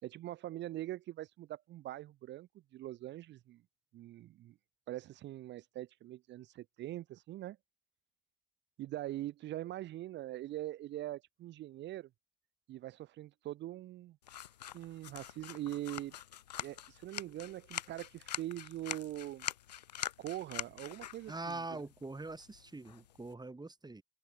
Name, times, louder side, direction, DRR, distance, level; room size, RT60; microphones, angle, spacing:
voice 1, 0.0-3.6 3.9-4.5 4.9-7.6 8.8-12.1 12.7-14.2 14.7-16.1 16.6-19.5 20.2-21.8, right 14 dB, 60° right, 0.8 m, -43 dB
sound 1, 14.2-23.3, left 11 dB, 85° left, 0.9 m, -45 dB
voice 2, 21.3-24.0, right 3 dB, 20° right, 2.8 m, -43 dB
figure-of-eight pair, 40°, 21 cm